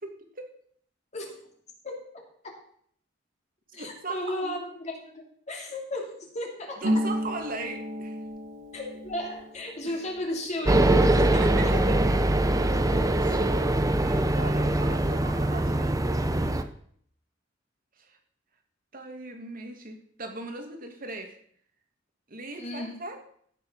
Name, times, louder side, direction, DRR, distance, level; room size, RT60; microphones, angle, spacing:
voice 1, 0.0-0.5 3.8-4.6 6.8-8.2 9.8-10.0 11.4-12.1 13.2-13.5 14.0-16.0 18.0-18.2 18.9-21.4 22.3-23.2, right 2 dB, 50° right, 4 dB, 2.3 m, -38 dB
voice 2, 3.7-6.8 8.7-11.7 22.6-22.9, left 1 dB, 40° left, 1 dB, 2.9 m, -35 dB
Harp, 6.8-14.3 14.6-15.7 15.9-16.6, equal, 90° right, 2.1 m, -35 dB
sound 1, 10.6-16.6, right 1 dB, 20° right, 0.8 m, -23 dB
15.0 x 7.5 x 5.6 m, 0.62 s
head